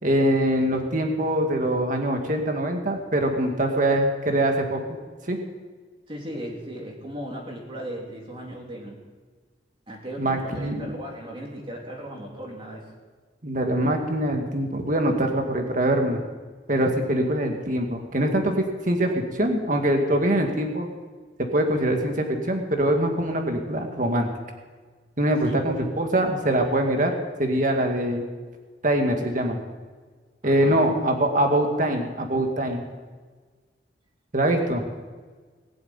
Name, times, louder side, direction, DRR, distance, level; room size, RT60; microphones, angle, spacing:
voice 1, 0.0-4.8 5.3-5.4 10.2-10.9 13.4-16.2 16.7-20.9 21.4-24.3 25.2-27.1 27.4-28.2 28.8-29.6 30.4-32.8 34.3-34.8, right 1 dB, 45° right, 3 dB, 2.0 m, -23 dB
voice 2, 6.1-9.0 9.9-12.9 25.4-25.8 30.4-30.9, equal, 30° right, -1 dB, 3.0 m, -37 dB
20.5 x 7.8 x 8.8 m, 1.4 s
head